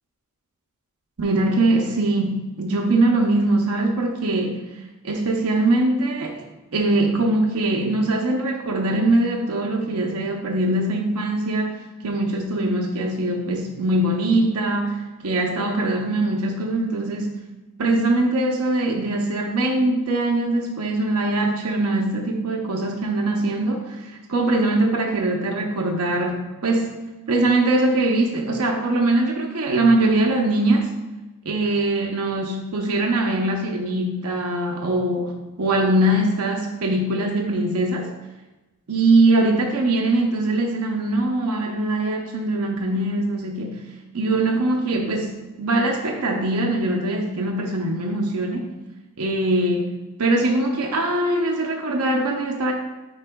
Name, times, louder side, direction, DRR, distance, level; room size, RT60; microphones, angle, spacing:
voice 1, 1.2-4.6 5.0-6.5 6.7-17.4 17.8-27.0 27.3-30.9 31.4-38.1 38.9-43.8 44.1-48.7 49.2-49.9 50.2-52.7, right 2 dB, 85° right, 1 dB, 0.7 m, -22 dB
9.6 x 4.7 x 2.2 m, 1.1 s
head